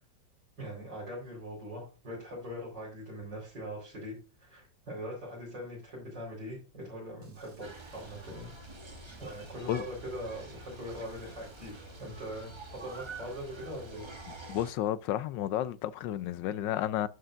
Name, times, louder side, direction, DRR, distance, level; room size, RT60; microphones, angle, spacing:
voice 1, 0.6-8.5 9.2-14.1, equal, 75° right, 4.7 m, -42 dB
sound 1, 7.2-14.6, equal, 45° right, 2.2 m, -54 dB
sound 2, 7.6-14.7, right 3 dB, 20° right, 0.8 m, -48 dB
voice 2, 14.5-17.1, left 12 dB, 85° left, 1.3 m, -31 dB
11.0 x 6.6 x 2.5 m
omnidirectional pair, 1.9 m